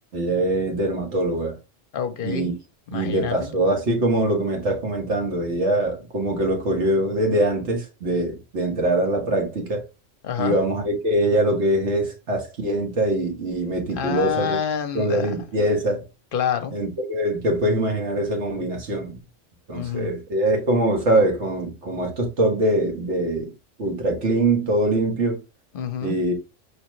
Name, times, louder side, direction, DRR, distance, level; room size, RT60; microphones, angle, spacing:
voice 1, 0.1-1.6 2.2-2.5 2.9-9.9 10.4-14.6 14.9-16.0 16.7-19.2 19.7-23.5 23.8-25.4 26.0-26.3, right 1 dB, 65° right, 1.7 m, -23 dB
voice 2, 1.9-2.5 2.9-3.5 10.2-10.6 14.0-15.3 16.3-16.7 19.7-20.1 25.7-26.2, left 8 dB, 50° left, 0.8 m, -27 dB
5.1 x 3.2 x 3.1 m
omnidirectional pair, 1.3 m